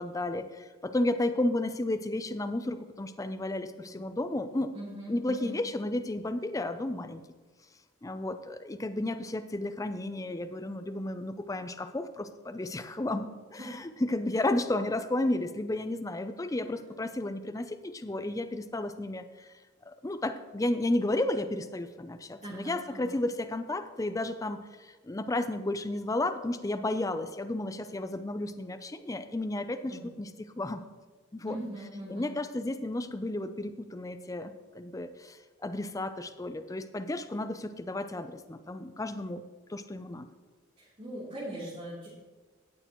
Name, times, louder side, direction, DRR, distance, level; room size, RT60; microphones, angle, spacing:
voice 1, 0.0-4.7 5.1-7.2 8.0-19.5 19.9-30.8 31.3-31.6 32.1-39.4 39.7-40.3, left 1 dB, 15° left, 9 dB, 0.5 m, -33 dB
voice 2, 4.7-5.6 13.6-13.7 16.8-16.9 22.4-23.2 29.9-30.0 31.4-32.3 40.8-42.1, right 1 dB, 35° right, -12 dB, 3.4 m, -41 dB
18.0 x 6.6 x 3.1 m, 1.3 s
head